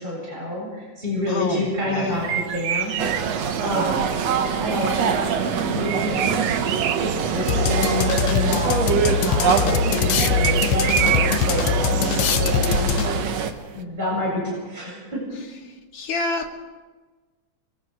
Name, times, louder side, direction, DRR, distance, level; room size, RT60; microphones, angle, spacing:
voice 1, 0.0-3.3 3.6-4.2 4.6-5.1 5.5-6.5 7.0-15.2, left 1 dB, 15° right, -5 dB, 8.2 m, -28 dB
voice 2, 1.3-2.3 15.6-16.5, left 2 dB, 50° left, 0 dB, 3.0 m, -29 dB
sound 1, 2.1-13.8, right 10 dB, 80° right, 1.3 m, -30 dB
sound 2, 3.0-13.5, right 7 dB, 60° right, 2.2 m, -24 dB
sound 3, 7.5-13.3, left 8 dB, 75° left, 2.2 m, -23 dB
26.0 x 23.0 x 4.9 m, 1.3 s
omnidirectional pair, 3.6 m